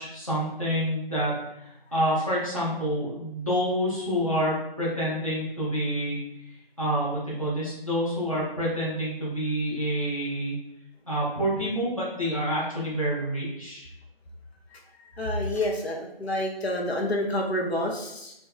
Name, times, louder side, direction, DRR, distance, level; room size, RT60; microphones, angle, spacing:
voice 1, 0.0-1.3 1.6-6.2 6.8-10.6 11.1-13.9, equal, 35° left, -8 dB, 0.7 m, -28 dB
voice 2, 15.2-18.3, left 1 dB, 85° left, 0 dB, 0.6 m, -28 dB
2.6 x 2.3 x 2.3 m, 0.80 s
figure-of-eight pair, 170°, 31 cm